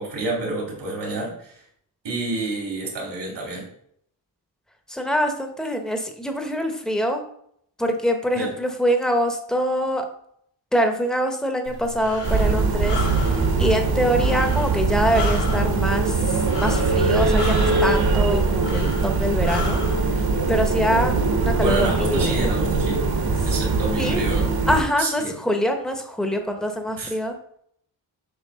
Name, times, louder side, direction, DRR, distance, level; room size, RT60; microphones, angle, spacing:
voice 1, 0.0-1.5 2.0-3.7 8.3-8.5 21.6-23.1 23.4-24.5 25.0-25.3 27.0-27.1, right 2 dB, 85° right, -1 dB, 3.3 m, -28 dB
voice 2, 4.9-7.2 7.8-10.0 10.7-19.8 20.1-20.2 20.5-21.1 21.4-22.5 23.4-23.5 24.0-24.3 24.7-27.4, equal, ahead, 4 dB, 1.1 m, -24 dB
Breathing, 11.7-20.0, left 2 dB, 85° left, 2.1 m, -33 dB
sound 1, 12.2-24.8, right 3 dB, 60° right, 1.5 m, -22 dB
7.7 x 3.2 x 6.3 m, 0.68 s
wide cardioid pair, 100°, 42 cm